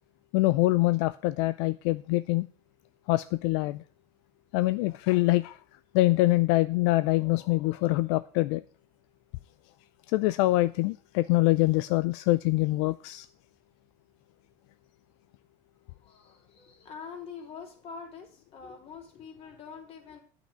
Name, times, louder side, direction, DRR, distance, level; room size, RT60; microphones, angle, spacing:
voice 1, 0.3-2.5 3.1-3.8 4.5-5.6 5.9-8.6 10.1-13.3, left 19 dB, 80° left, 14 dB, 0.4 m, -24 dB
voice 2, 15.9-20.2, left 6 dB, 45° left, 2 dB, 3.0 m, -45 dB
9.0 x 5.7 x 6.9 m, 0.43 s
cardioid pair, 135°, 14 cm